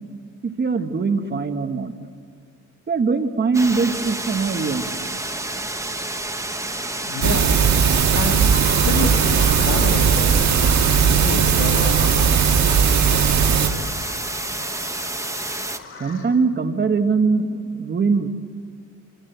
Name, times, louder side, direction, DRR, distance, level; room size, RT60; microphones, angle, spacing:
voice 1, 0.4-1.9 2.9-5.1 16.0-18.3, right 4 dB, 35° right, 7 dB, 1.4 m, -22 dB
sound 1, 3.5-15.8, right 2 dB, 10° right, 1.2 m, -29 dB
voice 2, 7.0-8.5 8.8-10.5 10.9-12.5, left 4 dB, 70° left, 2 dB, 3.2 m, -28 dB
sound 2, 7.2-13.7, right 7 dB, 60° right, 2.1 m, -18 dB
Bird vocalization bird call bird song, 8.5-16.3, left 4 dB, 45° left, 4.9 m, -38 dB
27.5 x 24.5 x 8.0 m, 2.1 s
cardioid pair, 120°, 31 cm